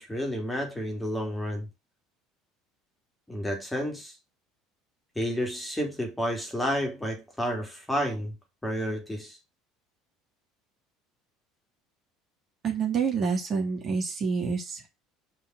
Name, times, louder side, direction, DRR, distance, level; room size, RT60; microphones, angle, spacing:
voice 1, 0.0-1.7 3.3-4.1 5.1-8.3 8.6-9.4, equal, 5° left, 3.2 m, -30 dB
voice 2, 12.6-14.9, right 5 dB, 40° right, 3.0 m, -28 dB
5.5 x 5.2 x 6.4 m
figure-of-eight pair, 65°, 0 cm